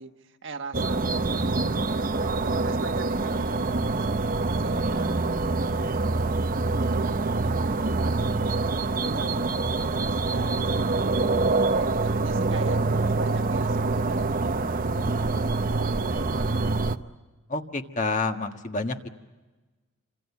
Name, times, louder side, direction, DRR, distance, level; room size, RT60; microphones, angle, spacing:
voice 1, 0.0-1.6 1.9-5.5 6.0-9.5 9.8-11.3 11.7-14.3 14.5-17.1, right 3 dB, 55° right, 5 dB, 1.5 m, -42 dB
sound 1, 0.7-17.0, right 3 dB, 40° right, 0.8 m, -25 dB
voice 2, 17.5-19.1, left 3 dB, 35° left, 5 dB, 1.6 m, -29 dB
27.5 x 26.0 x 7.2 m, 1.2 s
head